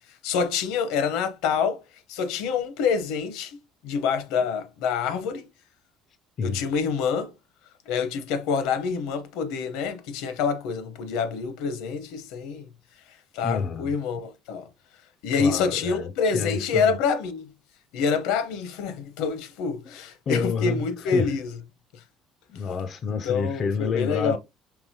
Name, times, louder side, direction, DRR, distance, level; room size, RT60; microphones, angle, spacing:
voice 1, 0.2-1.8 2.1-3.6 3.8-5.4 6.4-7.3 7.9-12.7 13.3-14.7 15.2-17.5 17.9-21.5 23.2-24.4, left 5 dB, 75° left, 0.7 m, -26 dB
voice 2, 13.4-14.0 15.3-16.9 19.8-20.0 20.3-21.3 22.5-24.4, left 5 dB, 35° left, 0.3 m, -29 dB
4.7 x 3.5 x 2.7 m
cardioid pair, 175°, 0 cm